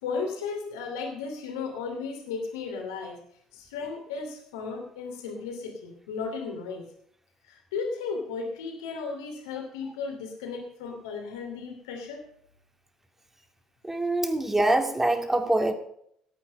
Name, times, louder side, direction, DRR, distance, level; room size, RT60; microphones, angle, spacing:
voice 1, 0.0-3.2 3.5-6.9 7.5-12.2, left 4 dB, 75° left, 2 dB, 2.8 m, -35 dB
voice 2, 13.8-15.7, right 1 dB, 15° right, 5 dB, 2.4 m, -24 dB
18.0 x 8.6 x 5.4 m, 0.70 s
figure-of-eight pair, 50°, 2 cm